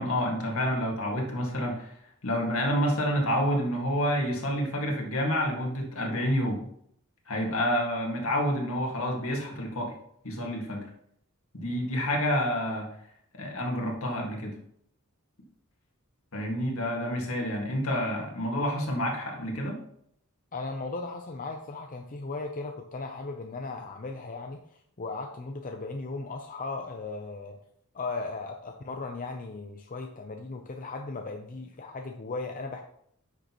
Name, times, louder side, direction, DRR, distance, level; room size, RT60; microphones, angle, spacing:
voice 1, 0.0-1.9 2.2-6.6 7.3-9.9 10.2-10.8 11.5-12.9 13.3-14.5 16.3-19.8, equal, 65° left, 0 dB, 2.0 m, -28 dB
voice 2, 20.5-27.6 27.9-32.8, left 3 dB, 40° left, 3 dB, 0.6 m, -37 dB
10.0 x 6.4 x 3.0 m, 0.70 s
head